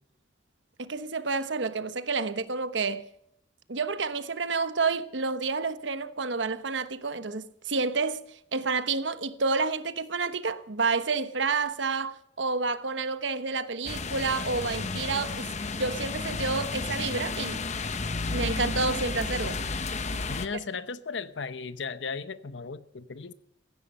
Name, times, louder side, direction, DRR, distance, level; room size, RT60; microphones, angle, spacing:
voice 1, 0.8-3.0 3.7-17.6 18.3-19.6, right 4 dB, 75° right, 1.2 m, -29 dB
sound 1, 13.9-20.5, left 3 dB, 40° left, 1.0 m, -32 dB
voice 2, 20.3-23.3, left 5 dB, 75° left, 0.8 m, -36 dB
16.5 x 15.0 x 5.6 m
head